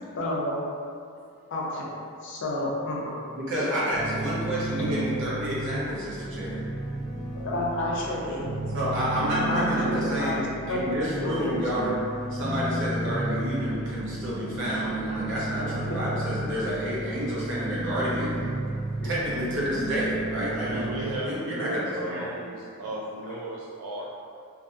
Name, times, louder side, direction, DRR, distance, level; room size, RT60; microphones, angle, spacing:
voice 1, 0.2-0.6 1.5-1.9 2.2-3.2 4.8-5.0 7.3-8.6 9.5-11.6 15.6-15.7 19.0-19.1 21.0-21.1, left 1 dB, 55° left, -4 dB, 0.5 m, -30 dB
voice 2, 3.3-6.6 8.7-10.4 10.7-11.9 12.3-18.3 19.0-20.9 21.2-22.2, equal, 55° right, -7 dB, 0.7 m, -29 dB
sound 1, 3.9-21.2, right 2 dB, ahead, 0.8 m, -33 dB
voice 3, 20.4-24.2, right 2 dB, 80° right, -4 dB, 0.3 m, -35 dB
2.5 x 2.5 x 2.4 m, 2.4 s
head